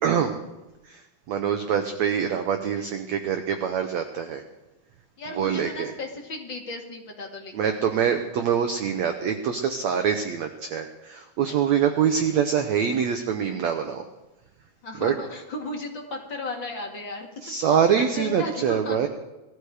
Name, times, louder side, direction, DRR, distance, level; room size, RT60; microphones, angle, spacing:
voice 1, 0.0-0.4 0.9-1.0 1.3-4.4 5.3-5.9 7.5-14.0 15.0-15.1 17.4-19.1, right 8 dB, 85° right, 7 dB, 1.5 m, -24 dB
voice 2, 5.2-7.5 14.8-17.3 18.0-19.0, left 2 dB, 35° left, 1 dB, 2.2 m, -35 dB
19.5 x 14.0 x 4.9 m, 1.0 s
omnidirectional pair, 4.5 m